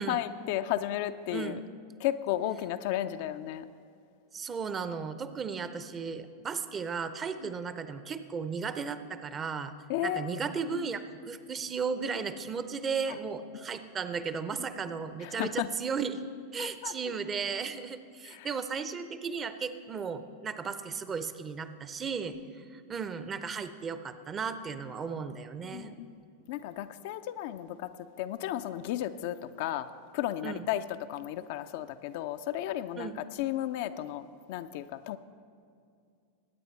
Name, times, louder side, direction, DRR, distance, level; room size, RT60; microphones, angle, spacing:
voice 1, 0.0-1.6 2.0-3.7 7.4-7.5 9.9-10.3 10.7-10.9 13.1-13.2 13.5-13.7 15.2-15.7 16.6-16.9 18.2-18.5 25.6-26.2 26.5-27.9 28.2-29.9 30.1-30.8 31.1-35.2, left 12 dB, 50° left, 10 dB, 0.4 m, -34 dB
voice 2, 1.3-1.6 4.3-9.7 10.0-16.2 16.5-26.1 30.4-30.7 33.0-33.2, right 5 dB, 25° right, 11 dB, 0.6 m, -35 dB
21.5 x 9.1 x 3.2 m, 2.4 s
figure-of-eight pair, 90°, 0 cm